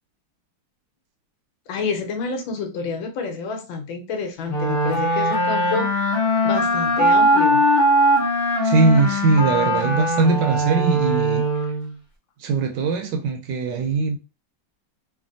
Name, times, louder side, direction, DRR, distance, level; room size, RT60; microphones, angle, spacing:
voice 1, 1.7-6.1 6.4-7.6, left 4 dB, 80° left, 1.4 m, -28 dB
sound 1, 4.5-11.9, equal, 40° left, 0.6 m, -20 dB
voice 2, 8.6-11.4 12.4-14.2, right 4 dB, 75° right, 1.2 m, -20 dB
3.3 x 2.5 x 2.5 m
omnidirectional pair, 2.1 m